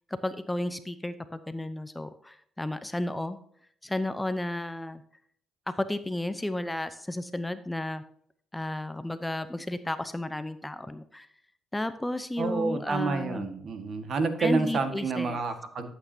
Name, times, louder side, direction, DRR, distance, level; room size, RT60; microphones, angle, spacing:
voice 1, 0.1-3.4 3.8-5.0 5.8-8.0 8.5-11.3 11.7-13.5 14.4-15.4, left 1 dB, 10° left, 11 dB, 0.7 m, -33 dB
voice 2, 12.4-15.9, right 4 dB, 60° right, 7 dB, 1.6 m, -29 dB
12.0 x 8.2 x 2.8 m, 0.64 s
cardioid pair, 90°, 0 cm